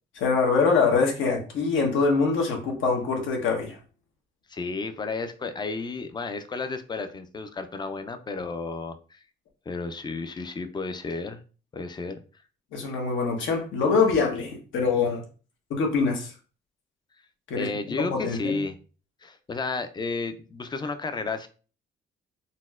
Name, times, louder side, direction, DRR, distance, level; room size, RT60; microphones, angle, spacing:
voice 1, 0.2-3.8 12.7-15.2 15.7-16.3 17.5-18.6, left 4 dB, 75° left, 2 dB, 1.0 m, -24 dB
voice 2, 4.5-9.2 9.7-11.4 11.7-12.2 17.5-18.8 19.2-21.5, left 3 dB, 20° left, 10 dB, 0.4 m, -32 dB
4.0 x 2.1 x 2.4 m, 0.37 s
cardioid pair, 90°, 20 cm